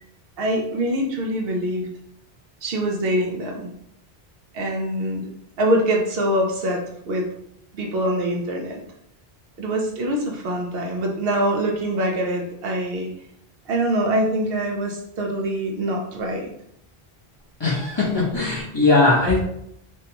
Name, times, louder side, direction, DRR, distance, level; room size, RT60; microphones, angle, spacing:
voice 1, 0.4-1.9 2.6-3.6 4.5-5.3 5.6-7.3 7.7-8.8 9.6-13.1 13.7-16.5, right 1 dB, 70° right, 1 dB, 0.8 m, -24 dB
voice 2, 17.6-19.4, left 3 dB, 30° left, -6 dB, 0.8 m, -19 dB
3.3 x 2.3 x 2.9 m, 0.75 s
omnidirectional pair, 1.1 m